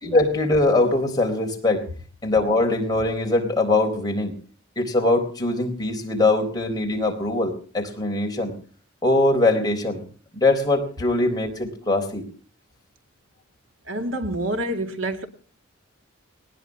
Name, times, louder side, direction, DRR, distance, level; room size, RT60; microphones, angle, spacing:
voice 1, 0.0-1.9 2.2-4.3 4.8-8.5 9.0-10.0 10.3-12.2, left 2 dB, 20° left, 4.1 m, -22 dB
voice 2, 13.8-15.3, right 1 dB, 65° right, 2.3 m, -27 dB
20.0 x 19.0 x 3.6 m
head